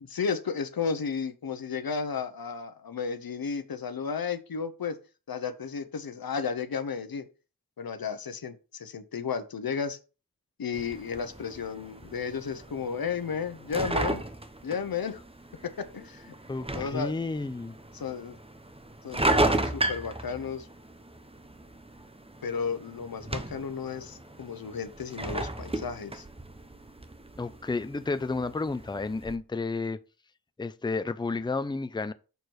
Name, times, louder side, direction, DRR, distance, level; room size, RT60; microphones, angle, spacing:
voice 1, 0.1-5.0 5.3-7.3 7.8-10.0 10.6-14.2 14.6-15.2 15.6-16.3 16.7-17.1 17.9-18.4 19.0-20.7 22.4-26.2, left 6 dB, 90° left, 0.8 m, -33 dB
sound 1, 10.7-29.4, right 1 dB, 15° right, 0.8 m, -34 dB
voice 2, 16.5-17.8 27.4-30.0 30.6-32.1, left 3 dB, 15° left, 0.5 m, -31 dB
6.8 x 4.5 x 4.6 m
wide cardioid pair, 55°, 35 cm